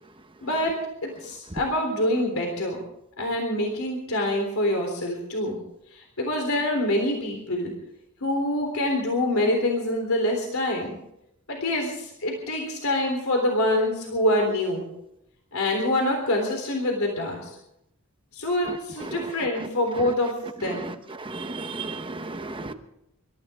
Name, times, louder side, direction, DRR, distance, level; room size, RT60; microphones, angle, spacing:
voice 1, 0.4-0.8 1.0-2.8 3.2-5.6 5.9-7.7 8.2-11.0 11.5-14.9 15.5-17.5 18.3-20.9, left 1 dB, 70° left, 3.6 m, -25 dB
voice 2, 19.0-19.5 20.0-20.1 20.6-22.7, right 3 dB, 25° right, 0.9 m, -35 dB
27.5 x 13.5 x 3.7 m
head